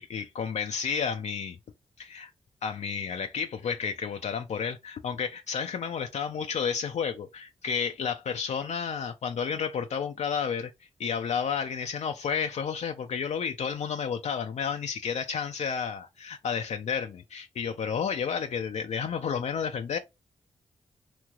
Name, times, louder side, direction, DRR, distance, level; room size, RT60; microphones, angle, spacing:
voice 1, 0.0-1.6 2.0-2.3 2.6-20.0, left 6 dB, 60° left, 0.4 m, -31 dB
3.0 x 2.8 x 2.3 m
supercardioid pair, 40°, 13 cm